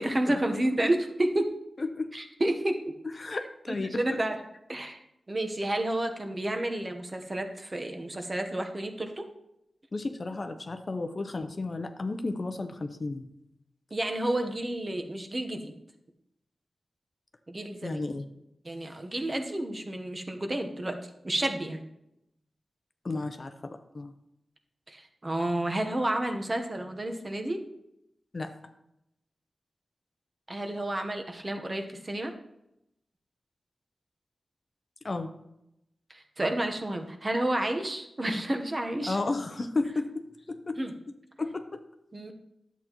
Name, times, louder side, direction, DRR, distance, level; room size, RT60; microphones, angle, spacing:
voice 1, 0.0-1.5 2.1-2.9 3.7-4.4 4.7-5.0 5.3-9.2 13.9-15.7 17.5-18.0 18.6-21.0 21.2-21.8 24.9-27.6 30.5-32.3 36.1-39.2 40.8-40.9 42.1-42.3, right 1 dB, 25° right, 4 dB, 1.0 m, -30 dB
voice 2, 1.8-2.1 3.2-4.0 9.9-13.2 17.8-18.2 23.0-24.1 28.3-28.5 35.0-35.3 39.1-40.8 41.4-41.6, left 3 dB, 40° left, 8 dB, 0.6 m, -33 dB
11.0 x 8.0 x 3.0 m, 0.84 s
wide cardioid pair, 110°, 0 cm